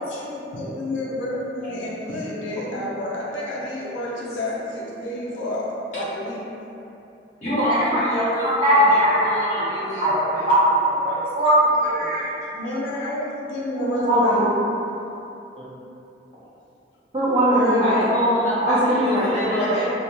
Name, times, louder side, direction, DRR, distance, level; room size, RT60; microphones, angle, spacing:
voice 1, 0.0-6.4 12.5-14.4 17.5-18.1, left 1 dB, 90° left, -5 dB, 0.5 m, -29 dB
voice 2, 7.4-10.4 11.0-11.2 12.0-12.3 12.9-13.0 17.8-19.9, equal, 40° left, -12 dB, 0.9 m, -25 dB
voice 3, 8.4-9.3 10.0-11.5 11.8-11.9 13.8-14.5 15.6-15.7 17.1-18.1 18.6-19.7, equal, 30° right, -9 dB, 0.4 m, -20 dB
2.2 x 2.1 x 2.8 m, 2.8 s
head